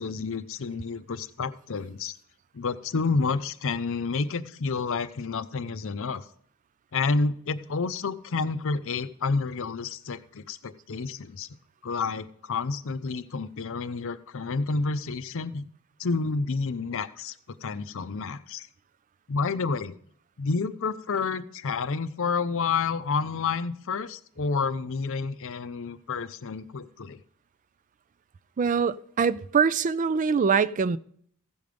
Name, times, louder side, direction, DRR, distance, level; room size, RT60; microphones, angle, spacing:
voice 1, 0.0-2.1 2.5-6.2 6.9-11.5 11.8-15.7 16.0-17.3 17.6-18.7 19.3-19.9 20.4-27.2, left 4 dB, 65° left, 0.6 m, -29 dB
voice 2, 28.6-31.0, right 6 dB, 35° right, 0.3 m, -23 dB
15.5 x 5.3 x 5.0 m
head